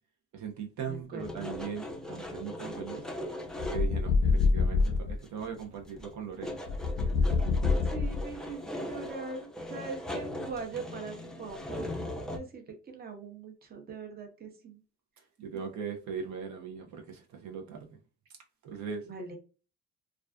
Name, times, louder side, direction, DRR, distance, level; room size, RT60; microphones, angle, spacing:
voice 1, 0.3-3.0 3.7-6.6 15.4-17.9 18.6-19.1, right 6 dB, 70° right, 0.6 m, -39 dB
voice 2, 0.9-1.5 4.6-4.7 7.8-11.9 12.3-14.8 19.1-19.4, right 4 dB, 30° right, 0.7 m, -42 dB
sound 1, 1.2-4.0 4.4-4.5 4.8-5.6 5.9-12.4, left 1 dB, ahead, 0.4 m, -39 dB
sound 2, 3.6-5.2 6.7-8.5, left 4 dB, 75° left, 0.5 m, -26 dB
2.4 x 2.3 x 2.2 m
cardioid pair, 90°, 30 cm